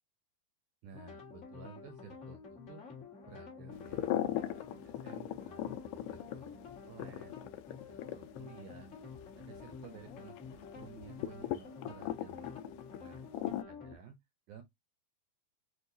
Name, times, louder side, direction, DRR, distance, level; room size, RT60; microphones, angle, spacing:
voice 1, 0.8-2.9 3.2-6.6 6.9-7.4 7.7-8.9 9.4-12.6 13.0-13.2 13.7-14.2 14.5-14.6, right 6 dB, 75° right, 1.9 m, -54 dB
sound 1, 0.9-13.9, left 4 dB, 35° left, 1.1 m, -50 dB
sound 2, 3.7-13.6, left 12 dB, 80° left, 2.0 m, -40 dB
6.4 x 2.6 x 2.7 m
omnidirectional pair, 4.2 m